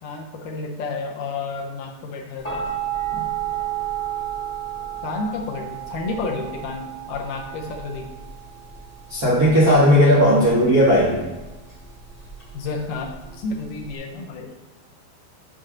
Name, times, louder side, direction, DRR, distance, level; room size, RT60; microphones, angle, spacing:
voice 1, 0.0-2.6 5.0-8.1 12.5-14.6, left 3 dB, 75° left, 0 dB, 2.1 m, -31 dB
sound 1, 2.4-13.9, right 9 dB, 30° left, 1.1 m, -32 dB
voice 2, 9.1-11.2, equal, 75° right, -7 dB, 0.8 m, -16 dB
6.5 x 5.9 x 3.8 m, 1.1 s
omnidirectional pair, 4.2 m